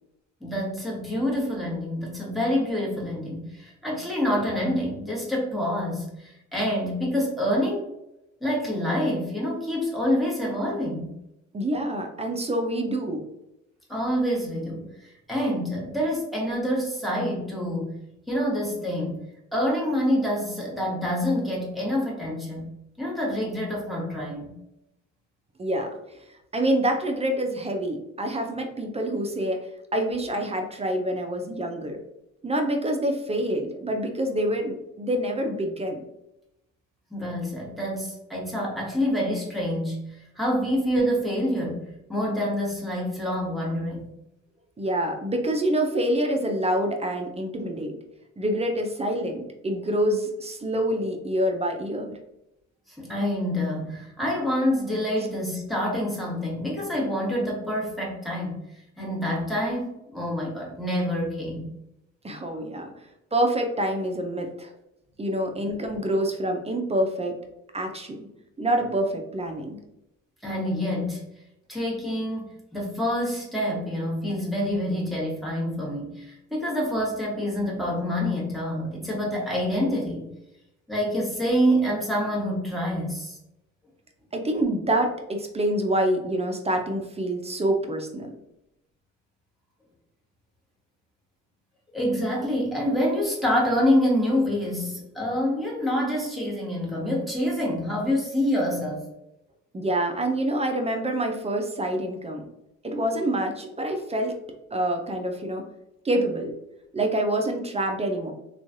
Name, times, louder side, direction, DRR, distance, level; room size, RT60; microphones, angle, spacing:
voice 1, 0.4-7.9 8.4-11.1 13.9-18.0 18.3-19.2 19.5-22.7 23.0-24.5 37.1-41.8 42.1-44.1 53.0-58.6 59.0-61.7 70.4-71.2 71.7-80.3 80.9-83.4 91.9-99.0, equal, ahead, -4 dB, 1.2 m, -27 dB
voice 2, 11.5-13.2 25.6-26.0 26.5-29.6 29.9-32.0 32.4-36.1 44.8-48.0 48.4-52.1 62.2-62.9 63.3-64.7 65.2-67.3 67.7-68.3 68.6-69.8 84.3-88.3 99.7-102.5 102.8-104.3 104.7-105.6 106.0-106.5 106.9-108.3, right 1 dB, 20° right, 3 dB, 0.4 m, -26 dB
3.0 x 2.3 x 2.6 m, 0.87 s
cardioid pair, 90°, 30 cm